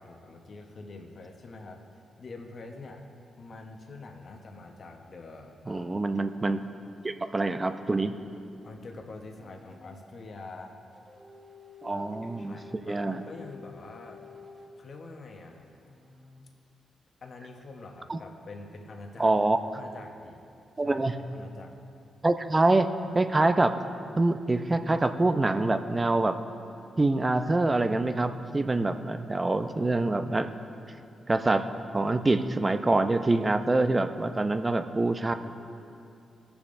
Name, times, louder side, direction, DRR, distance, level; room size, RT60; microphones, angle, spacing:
voice 1, 0.0-1.8 2.2-3.0 3.4-5.9 8.6-10.8 11.9-14.2 14.8-15.6 17.2-19.3 19.7-20.4 20.8-21.8, left 3 dB, 55° left, 2 dB, 1.0 m, -45 dB
voice 2, 5.7-6.6 7.0-8.1 11.8-12.6 12.9-13.2 18.1-18.2 19.2-19.6 20.8-21.1 22.2-23.8 24.2-26.4 27.0-30.5 31.3-31.7 31.9-35.3, right 2 dB, 25° right, 9 dB, 0.5 m, -25 dB
sound 1, 7.7-9.8 10.9-14.8 15.5-16.4, left 4 dB, 55° right, 2.0 m, -52 dB
16.5 x 7.0 x 2.6 m, 2.7 s
cardioid pair, 60°, 0 cm